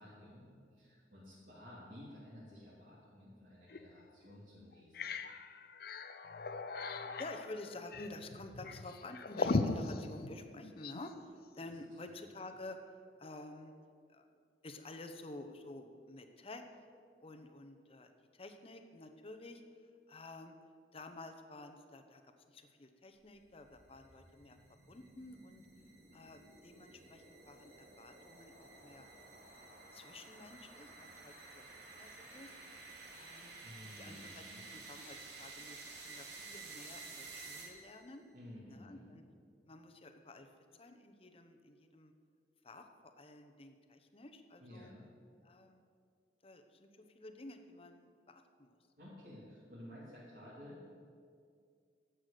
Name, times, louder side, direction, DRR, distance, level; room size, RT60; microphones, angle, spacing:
voice 1, 0.0-5.2 11.7-11.8 33.6-34.6 38.3-39.1 44.6-45.0 49.0-50.9, left 1 dB, 60° right, -9 dB, 2.9 m, -53 dB
sound 1, 3.7-3.9 4.3-4.4 4.7-11.1, left 3 dB, 60° left, 0.6 m, -39 dB
voice 2, 6.8-13.7 14.1-14.3 14.6-16.8 17.2-19.6 20.1-20.5 20.9-24.6 24.9-25.6 26.1-29.1 29.5-32.5 33.1-34.4 34.7-38.2 38.7-39.2 39.6-42.1 42.6-44.9 45.4-45.8 46.4-48.7, left 2 dB, 35° left, 6 dB, 0.9 m, -51 dB
sound 2, 23.3-38.1, right 3 dB, 80° right, 2.3 m, -53 dB
12.0 x 8.0 x 6.7 m, 2.2 s
head